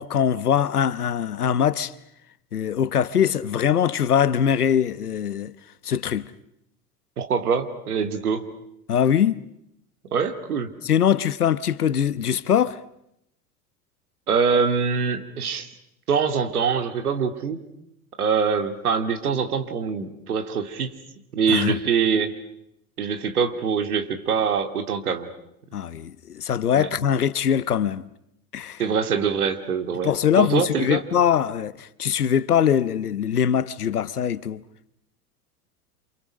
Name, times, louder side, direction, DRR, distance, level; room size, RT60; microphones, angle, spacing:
voice 1, 0.0-1.9 2.5-5.5 5.8-6.3 8.9-9.5 10.8-12.8 21.5-21.8 25.7-28.0 28.5-28.8 30.0-34.6, left 9 dB, 80° left, 1.1 m, -22 dB
voice 2, 7.2-8.4 10.1-10.7 14.3-15.7 16.1-17.6 18.2-20.9 21.3-22.3 23.0-25.3 26.7-26.9 28.8-31.0, right 6 dB, 75° right, 2.6 m, -24 dB
29.0 x 27.5 x 6.4 m
figure-of-eight pair, 75°, 44 cm